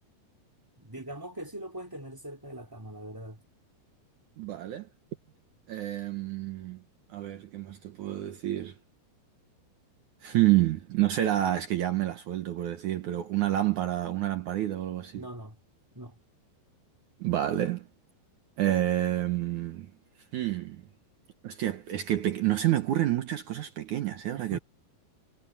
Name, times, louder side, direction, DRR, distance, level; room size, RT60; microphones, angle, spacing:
voice 1, 0.8-3.4 15.1-15.6 15.9-16.2 24.4-24.6, right 1 dB, 5° right, 3.3 m, -41 dB
voice 2, 4.4-4.9 5.7-6.8 7.1-8.7 10.2-15.2 17.2-17.8 18.6-19.9 20.3-20.8 21.4-24.6, right 13 dB, 80° right, 1.7 m, -28 dB
omnidirectional pair, 5.1 m